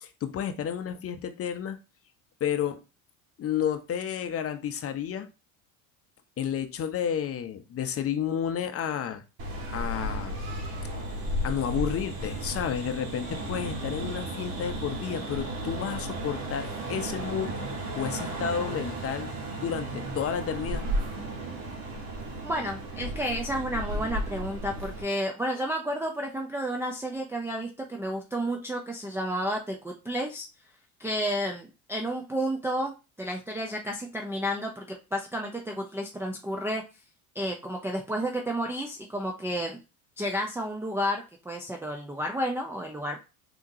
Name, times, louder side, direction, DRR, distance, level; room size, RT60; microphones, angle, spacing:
voice 1, 0.0-1.8 2.4-2.8 3.4-5.3 6.4-9.2 9.7-10.5 11.4-17.6 17.9-19.3 19.6-20.8, left 8 dB, 30° left, 0.7 m, -31 dB
sound 1, 9.4-25.0, right 1 dB, 50° right, 1.5 m, -34 dB
voice 2, 22.4-30.5 31.0-36.8 37.3-39.8 40.2-43.2, equal, 5° right, 0.5 m, -31 dB
3.6 x 3.0 x 2.6 m
hypercardioid pair, 80°, 44 cm